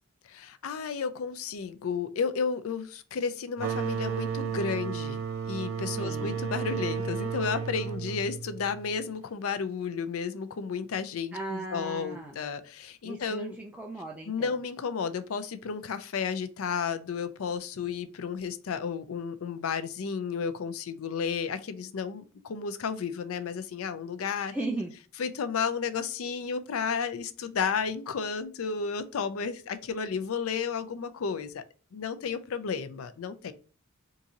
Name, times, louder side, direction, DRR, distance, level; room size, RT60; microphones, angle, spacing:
voice 1, 0.2-13.6 14.3-24.5 25.2-31.6 31.9-33.5, left 6 dB, 75° left, 11 dB, 0.4 m, -32 dB
sound 1, 3.6-9.0, right 6 dB, 80° right, 0.6 m, -33 dB
voice 2, 6.0-6.4 11.3-12.4 13.0-14.5 24.5-24.9, right 1 dB, 5° right, 0 dB, 0.4 m, -36 dB
3.8 x 2.6 x 2.8 m, 0.37 s
head